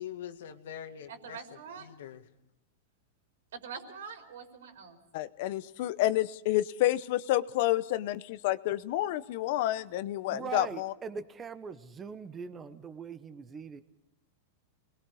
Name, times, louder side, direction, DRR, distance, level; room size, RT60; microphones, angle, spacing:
voice 1, 0.0-2.3, left 10 dB, 75° left, 7 dB, 2.0 m, -44 dB
voice 2, 1.1-1.9 3.5-5.0, right 6 dB, 85° right, 5 dB, 4.6 m, -44 dB
voice 3, 5.1-10.9, left 15 dB, 45° left, 15 dB, 0.8 m, -29 dB
voice 4, 10.3-13.8, right 6 dB, 15° right, 10 dB, 1.0 m, -41 dB
29.0 x 21.5 x 4.9 m, 0.82 s
supercardioid pair, 170°, 0 cm